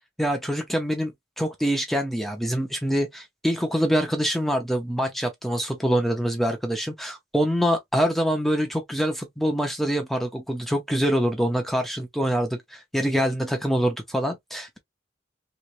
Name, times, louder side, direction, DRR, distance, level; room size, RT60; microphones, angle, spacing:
voice 1, 0.2-14.8, equal, ahead, 0.6 m, -25 dB
3.1 x 3.1 x 2.4 m
head